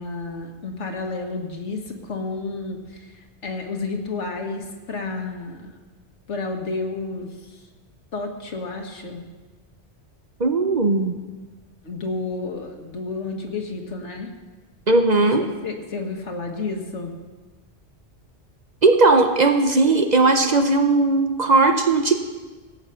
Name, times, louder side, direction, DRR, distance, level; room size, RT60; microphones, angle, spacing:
voice 1, 0.0-5.7 6.3-7.6 8.1-9.2 11.8-14.3 15.4-17.1, left 3 dB, 75° left, 3 dB, 1.8 m, -31 dB
voice 2, 10.4-11.1 14.9-15.5 18.8-22.1, right 3 dB, 40° right, 6 dB, 0.8 m, -17 dB
17.0 x 8.0 x 5.7 m, 1.3 s
omnidirectional pair, 1.2 m